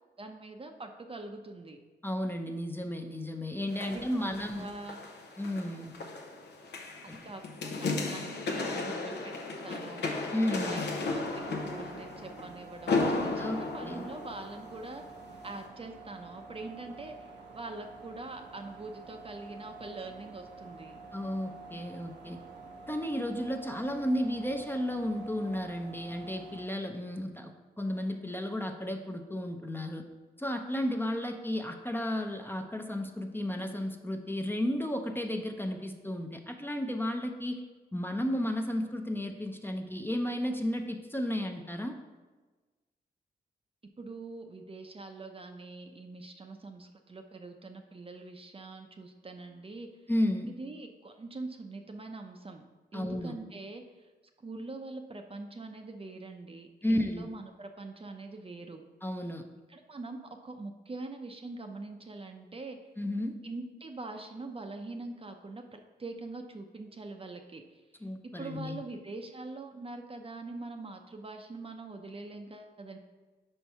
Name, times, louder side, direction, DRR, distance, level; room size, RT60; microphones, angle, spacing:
voice 1, 0.2-1.8 3.8-5.0 7.2-10.1 10.5-13.4 13.7-15.0 15.4-17.3 17.5-20.9 44.0-49.9 50.6-52.6 52.9-54.1 54.4-58.8 59.7-62.8 63.4-67.6 68.2-73.0, right 3 dB, 30° right, 4 dB, 0.6 m, -43 dB
voice 2, 2.0-4.7 5.4-5.9 7.1-7.3 10.3-10.8 13.4-14.1 21.1-22.4 22.9-30.0 30.4-37.6 37.9-42.0 50.1-50.6 52.9-53.4 56.8-57.3 59.0-59.4 63.0-63.4 68.0-68.8, left 1 dB, 10° left, 4 dB, 0.6 m, -33 dB
sound 1, 3.7-14.9 15.5-15.6, left 3 dB, 75° left, 0.8 m, -35 dB
sound 2, 11.3-26.6, right 3 dB, 80° right, 1.0 m, -48 dB
4.5 x 4.5 x 5.4 m, 1.3 s
cardioid pair, 55°, 18 cm